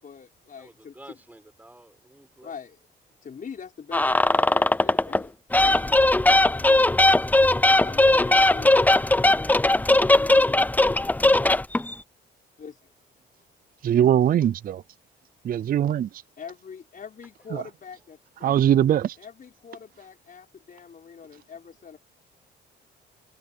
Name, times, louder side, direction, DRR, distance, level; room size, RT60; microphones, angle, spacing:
voice 1, 0.0-1.2 2.4-2.8 3.2-5.3 6.4-6.9 7.6-8.9 12.6-12.9 16.4-18.5 19.2-22.0, left 6 dB, 45° left, 4.8 m, -42 dB
voice 2, 0.6-2.5, right 1 dB, 10° right, 6.2 m, -50 dB
sound 1, 3.9-5.2 5.5-11.9, left 2 dB, 10° left, 0.6 m, -19 dB
voice 3, 13.8-14.8 15.4-16.1 17.5-17.6 18.4-19.2, right 10 dB, 45° right, 0.4 m, -21 dB
cardioid pair, 90°, 20 cm